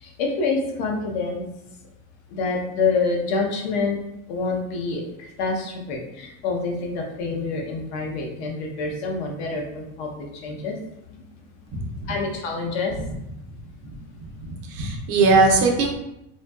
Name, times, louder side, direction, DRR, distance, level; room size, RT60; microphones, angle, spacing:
voice 1, 0.0-1.4 2.3-4.0 4.3-10.7 12.1-12.9 13.9-14.0, left 4 dB, 60° left, 0 dB, 0.7 m, -27 dB
voice 2, 14.4-15.9, right 3 dB, 35° right, 1 dB, 0.4 m, -19 dB
2.6 x 2.2 x 2.2 m, 0.86 s
cardioid pair, 150°, 42 cm